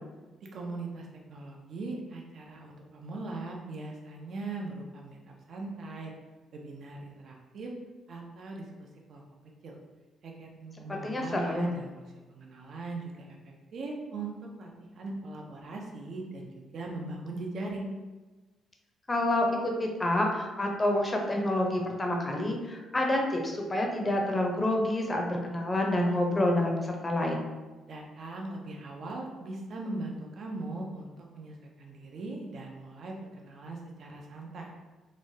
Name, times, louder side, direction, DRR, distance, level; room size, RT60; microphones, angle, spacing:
voice 1, 0.5-5.2 5.5-6.1 6.5-7.7 8.1-9.3 9.6-9.8 10.2-12.0 12.3-17.9 27.9-34.7, right 2 dB, 60° right, 0 dB, 0.5 m, -40 dB
voice 2, 10.9-11.8 19.1-27.5, left 1 dB, 20° left, 1 dB, 0.5 m, -28 dB
3.0 x 2.2 x 2.7 m, 1.2 s
cardioid pair, 90°, 0 cm